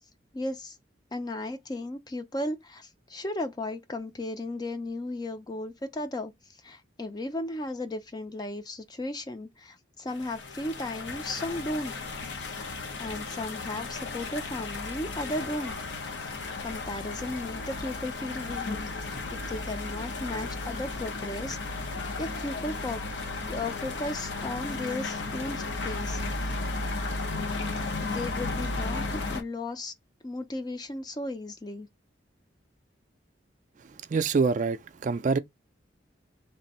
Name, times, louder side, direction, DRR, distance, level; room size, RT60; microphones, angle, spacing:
voice 1, 0.3-0.8 1.1-6.3 6.6-11.9 12.4-12.7 13.0-15.8 16.3-18.7 19.3-21.9 22.2-23.0 23.5-26.6 27.7-29.9 30.2-31.9, left 1 dB, 20° left, 0.4 m, -35 dB
sound 1, 10.1-29.4, left 3 dB, 80° left, 0.8 m, -34 dB
voice 2, 34.1-35.4, right 4 dB, 40° right, 0.3 m, -25 dB
3.2 x 2.6 x 4.1 m
head